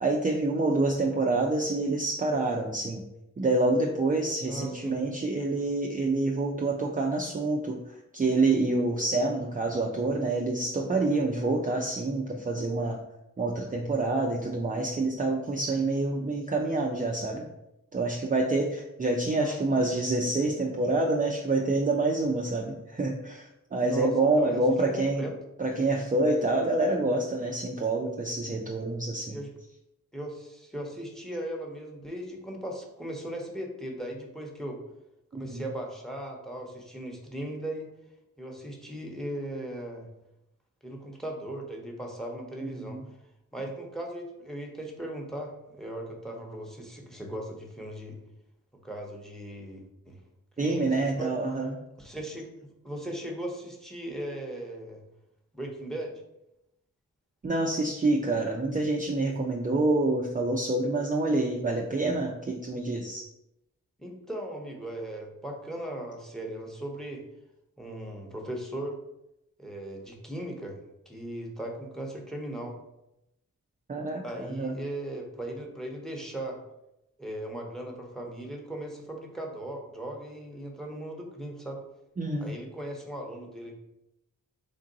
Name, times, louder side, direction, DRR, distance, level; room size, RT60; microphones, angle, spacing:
voice 1, 0.0-3.0 3.4-13.0 13.4-17.5 17.9-25.3 25.6-29.4 35.3-35.7 42.6-43.0 50.6-51.8 57.4-63.3 73.9-74.8 82.2-82.5, right 2 dB, 25° right, 0 dB, 0.5 m, -27 dB
voice 2, 4.5-5.0 19.4-19.9 23.9-24.1 24.4-24.6 24.9-25.3 29.3-29.5 30.1-34.8 35.3-37.9 38.4-40.1 40.8-43.0 43.5-48.2 48.8-50.2 50.6-51.3 52.0-52.5 52.8-55.0 55.5-56.1 64.0-67.2 67.8-69.0 69.6-70.8 71.1-72.8 74.2-76.6 77.2-81.8 82.4-83.8, right 1 dB, ahead, 1 dB, 0.9 m, -38 dB
3.7 x 2.5 x 3.9 m, 0.87 s
cardioid pair, 55°, 32 cm